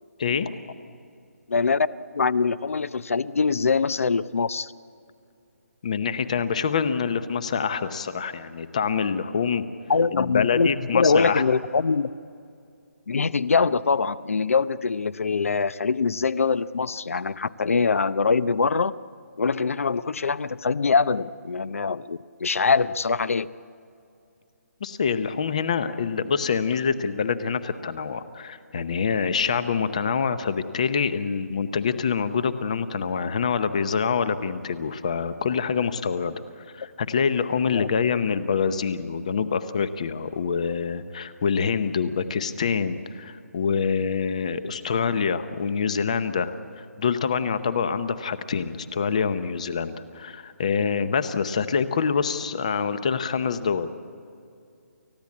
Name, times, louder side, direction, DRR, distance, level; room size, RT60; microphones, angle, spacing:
voice 1, 0.2-0.5 5.8-9.6 10.1-11.6 24.8-53.9, left 6 dB, 25° left, 12 dB, 0.8 m, -26 dB
voice 2, 1.5-1.9 2.1-4.7 9.9-10.7 10.9-12.1 13.1-18.9 19.4-23.5 37.7-37.9, left 5 dB, 60° left, 17 dB, 0.7 m, -23 dB
29.5 x 15.0 x 8.6 m, 2.4 s
hypercardioid pair, 180°, 9 cm